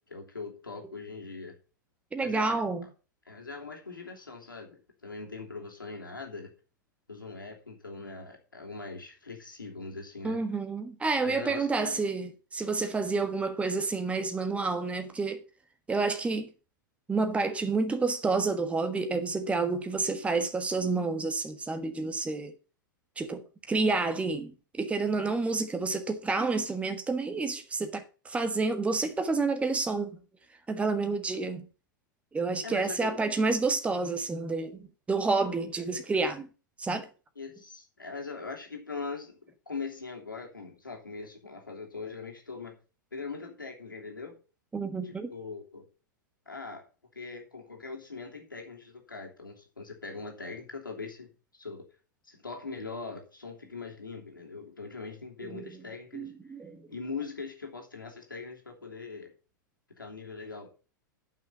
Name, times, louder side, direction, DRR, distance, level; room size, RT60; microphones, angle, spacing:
voice 1, 0.1-1.5 2.2-2.6 3.3-6.5 7.1-10.4 11.2-12.0 32.6-33.2 37.4-42.8 43.1-44.4 45.0-45.9 46.5-46.8 47.1-51.8 52.2-56.3 56.9-59.3 60.0-60.7, left 4 dB, 85° left, 3.0 m, -41 dB
voice 2, 2.1-2.9 10.2-15.4 15.9-16.5 17.1-22.5 23.2-30.2 30.7-31.7 32.3-36.5 36.8-37.1 44.7-45.3 55.4-55.7 56.1-56.9, right 3 dB, 10° right, 1.3 m, -29 dB
9.7 x 5.8 x 7.1 m
figure-of-eight pair, 95°, 11 cm